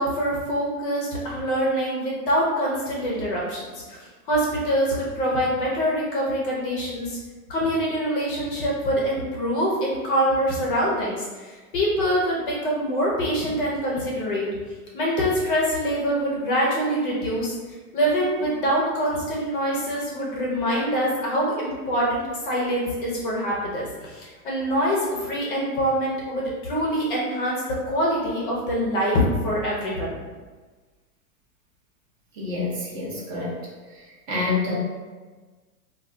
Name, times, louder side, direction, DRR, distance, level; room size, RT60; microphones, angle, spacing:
voice 1, 0.0-7.2 7.5-14.5 14.9-17.5 17.9-30.2, equal, 35° left, -4 dB, 0.5 m, -25 dB
voice 2, 32.3-33.6 34.3-34.7, left 3 dB, 35° right, -5 dB, 0.6 m, -27 dB
2.3 x 2.2 x 3.5 m, 1.3 s
supercardioid pair, 160°, 45 cm